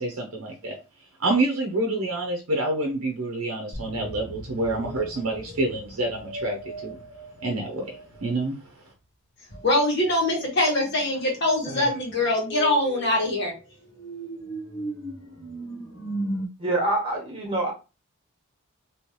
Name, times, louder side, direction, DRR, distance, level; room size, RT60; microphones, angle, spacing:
voice 1, 0.0-7.0 7.4-8.9, right 2 dB, 75° right, 2 dB, 0.7 m, -28 dB
sound 1, 3.7-9.1, left 1 dB, 5° left, 1.5 m, -44 dB
sound 2, 4.6-8.3 9.5-16.5, right 1 dB, 65° left, 1.0 m, -38 dB
voice 2, 9.6-13.5, left 1 dB, 50° left, -3 dB, 1.7 m, -23 dB
voice 3, 16.6-17.7, right 2 dB, 25° right, -2 dB, 1.4 m, -26 dB
3.2 x 3.0 x 3.0 m, 0.30 s
head